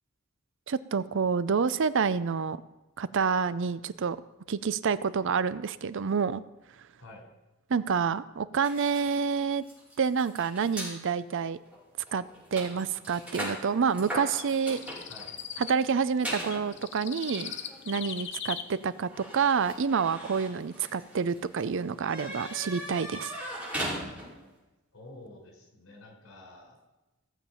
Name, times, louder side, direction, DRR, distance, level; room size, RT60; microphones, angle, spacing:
voice 1, 0.7-2.6 3.0-4.2 4.5-6.4 7.7-9.6 10.0-11.6 12.1-12.2 12.5-14.8 15.6-17.5 17.9-23.3, right 6 dB, 65° right, 15 dB, 0.5 m, -28 dB
sound 1, 8.6-10.9 11.7-11.8 12.1-24.5, equal, 5° right, 5.4 m, -40 dB
sound 2, 14.4-15.8 16.5-18.6, left 8 dB, 60° left, 0.9 m, -39 dB
voice 2, 24.9-26.8, left 2 dB, 75° left, 1 dB, 4.4 m, -49 dB
17.0 x 7.2 x 5.7 m, 1.0 s
head